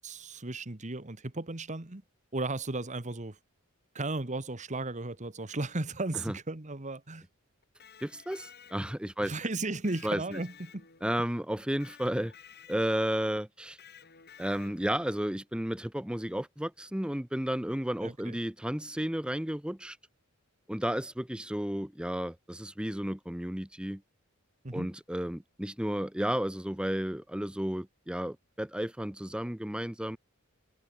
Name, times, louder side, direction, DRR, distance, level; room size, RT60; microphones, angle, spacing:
voice 1, 0.0-2.0 2.3-3.4 3.9-7.3 9.2-10.8 18.0-18.4 24.6-24.9, right 2 dB, 35° right, 1.5 m, -35 dB
Electric guitar, 7.6-9.2 9.8-11.2 11.8-13.1 13.8-15.0, left 7 dB, 50° left, 6.4 m, -54 dB
voice 2, 8.0-9.4 10.0-10.4 11.0-12.3 12.7-13.8 14.4-20.0 20.7-24.0 24.7-30.2, equal, 5° right, 0.7 m, -33 dB
head